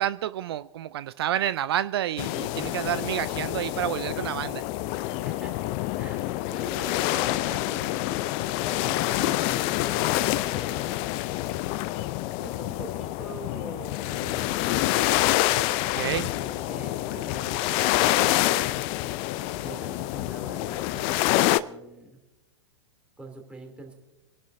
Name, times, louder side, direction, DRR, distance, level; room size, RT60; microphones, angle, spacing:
voice 1, 0.0-4.6 16.0-16.3, right 11 dB, 55° right, 17 dB, 0.4 m, -29 dB
sound 1, 2.2-21.6, left 16 dB, 35° left, 0.5 m, -27 dB
voice 2, 5.2-8.1 8.6-10.1 10.5-11.1 12.4-15.4 16.3-19.0 19.5-22.2 23.2-24.0, right 2 dB, 5° right, 2 dB, 3.0 m, -44 dB
26.0 x 11.5 x 2.7 m, 1.0 s
figure-of-eight pair, 105°, 15 cm